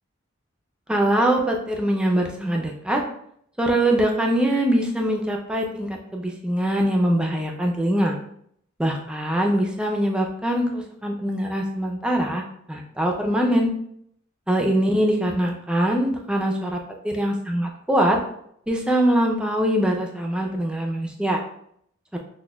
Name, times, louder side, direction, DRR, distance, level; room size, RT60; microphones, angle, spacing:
voice 1, 0.9-3.0 3.6-8.1 8.8-12.4 12.7-13.7 14.5-16.8 17.0-18.2 18.7-21.4 22.1-22.2, right 1 dB, 5° right, 1 dB, 0.4 m, -23 dB
6.1 x 2.1 x 2.2 m, 0.70 s
head